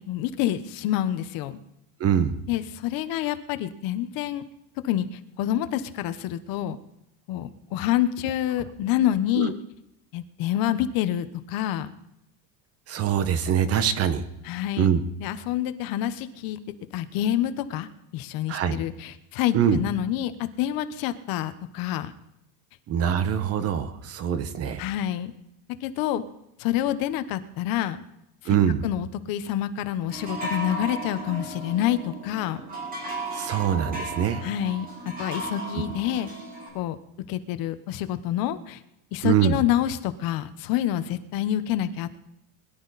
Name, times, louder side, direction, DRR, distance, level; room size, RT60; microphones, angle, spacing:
voice 1, 0.0-1.6 2.5-4.4 4.8-6.8 7.3-9.5 10.1-11.9 14.4-14.9 15.2-16.6 16.9-22.1 24.8-25.3 25.8-26.2 26.6-28.0 28.8-32.6 34.4-36.3 36.7-37.0 37.3-38.8 39.1-42.2, left 12 dB, 60° left, 12 dB, 1.1 m, -27 dB
voice 2, 2.0-2.3 9.4-9.5 12.9-14.2 14.8-15.0 18.5-18.8 19.5-19.8 22.9-24.8 28.4-28.8 33.3-34.5 39.2-39.6, right 9 dB, 35° right, 12 dB, 1.1 m, -23 dB
sound 1, 30.1-36.7, right 2 dB, 20° right, 4.3 m, -35 dB
21.5 x 12.0 x 4.2 m, 0.83 s
cardioid pair, 165°, 39 cm